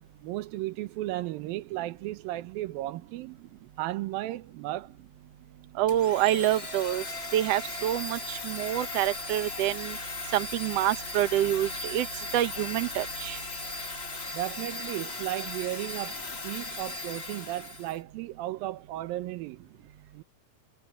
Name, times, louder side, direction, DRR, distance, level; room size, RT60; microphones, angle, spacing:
voice 1, 0.2-3.4 3.8-4.9 14.3-19.7 20.1-20.2, right 16 dB, 85° right, 2.6 m, -35 dB
voice 2, 5.8-7.0 7.3-10.0 10.3-12.1 12.3-13.4, right 13 dB, 65° right, 1.7 m, -27 dB
Domestic sounds home sounds, 5.9-18.0, left 3 dB, 25° left, 1.7 m, -37 dB
omnidirectional pair, 4.1 m